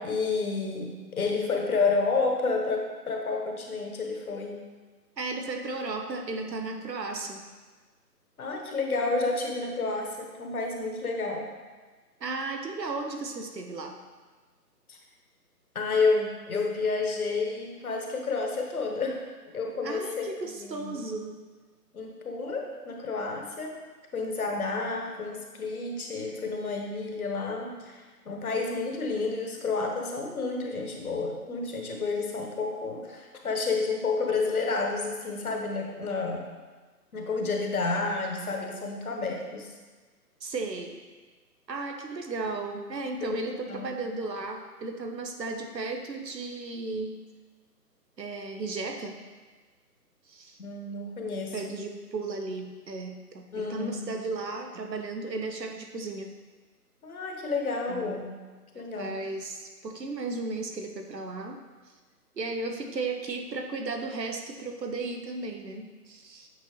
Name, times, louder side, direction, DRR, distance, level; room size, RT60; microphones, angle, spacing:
voice 1, 0.0-4.6 8.4-11.5 14.9-15.0 15.7-19.2 19.5-21.0 21.9-23.8 24.1-36.4 37.1-39.7 43.2-43.9 50.6-51.7 53.5-54.0 57.0-58.3 58.7-59.2, left 3 dB, 60° left, 1 dB, 1.2 m, -30 dB
voice 2, 5.2-7.4 12.2-14.0 19.8-21.4 40.4-41.0 41.7-47.2 48.2-49.2 50.3-50.6 51.5-56.3 57.9-58.2 58.7-61.6 62.4-66.5, right 3 dB, 90° right, 4 dB, 1.0 m, -35 dB
8.0 x 4.0 x 2.9 m, 1.4 s
figure-of-eight pair, 155°, 48 cm